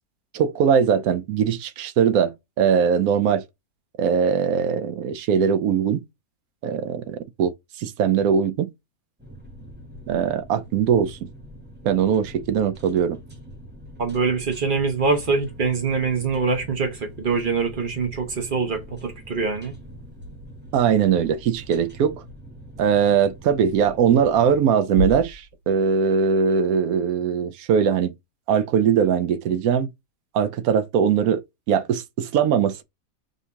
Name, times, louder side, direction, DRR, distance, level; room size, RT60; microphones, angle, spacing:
voice 1, 0.3-3.4 4.0-6.0 6.6-8.7 10.1-11.2 11.8-13.2 20.7-22.2 22.8-28.1 28.5-29.9 30.3-32.8, right 7 dB, 85° right, 1.1 m, -21 dB
sound 1, 9.2-24.7, equal, 10° right, 0.8 m, -43 dB
voice 2, 14.0-19.7, right 4 dB, 40° right, 1.1 m, -24 dB
5.3 x 2.9 x 2.2 m
omnidirectional pair, 1.5 m